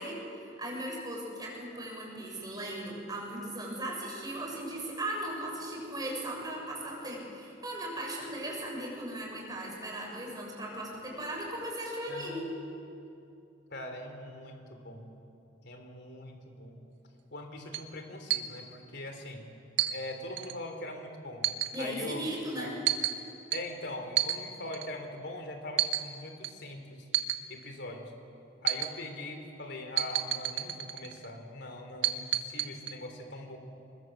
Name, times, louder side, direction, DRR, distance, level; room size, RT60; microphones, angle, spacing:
voice 1, 0.0-12.5 21.7-22.7, right 1 dB, 20° right, -2 dB, 7.0 m, -37 dB
voice 2, 13.7-15.1 15.6-16.8 17.3-19.4 19.9-21.5 21.8-22.2 22.6-22.8 23.5-27.1 27.5-28.1 28.6-33.6, left 1 dB, 60° left, 5 dB, 3.6 m, -42 dB
sound 1, 17.7-17.8 18.3-18.4 19.8-20.0 20.4-20.5 21.4-21.9 22.9-23.2 23.5-23.6 24.2-24.4 24.7-24.9 25.8-26.0 26.4-26.5 27.1-27.4 28.7-28.9 30.0-31.2 32.0-32.9, right 12 dB, 80° right, 1.4 m, -29 dB
25.0 x 21.0 x 8.0 m, 2.7 s
head